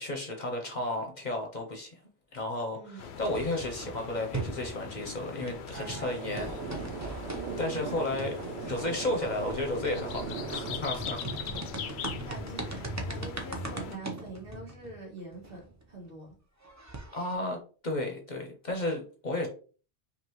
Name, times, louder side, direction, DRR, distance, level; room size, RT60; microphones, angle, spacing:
voice 1, 0.0-2.0 2.3-7.2 7.6-8.3 8.7-11.2 11.9-12.3 17.1-17.6 17.8-19.5, left 2 dB, 45° left, 0.8 m, -33 dB
sound 1, 3.0-14.0, left 7 dB, 75° left, 0.8 m, -41 dB
sound 2, 3.2-5.1 5.4-15.9 16.3-16.4 16.6-17.3, right 2 dB, 20° right, 0.6 m, -40 dB
sound 3, 5.7-10.8, right 6 dB, 85° right, 0.9 m, -39 dB
voice 2, 7.1-8.0 11.3-16.3 17.4-17.6, right 2 dB, 55° right, 2.1 m, -46 dB
5.1 x 2.7 x 3.0 m
omnidirectional pair, 1.1 m